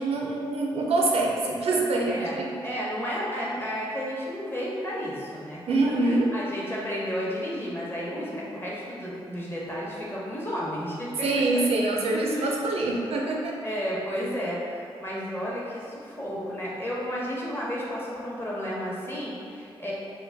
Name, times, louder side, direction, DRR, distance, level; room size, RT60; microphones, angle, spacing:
voice 1, 0.0-2.5 5.7-6.3 11.2-13.6, right 2 dB, 70° right, -1 dB, 0.4 m, -25 dB
voice 2, 2.6-5.6 6.0-11.4 12.1-12.6 13.6-19.9, equal, 20° left, -6 dB, 0.8 m, -32 dB
2.2 x 2.1 x 3.4 m, 2.3 s
cardioid pair, 45°, 11 cm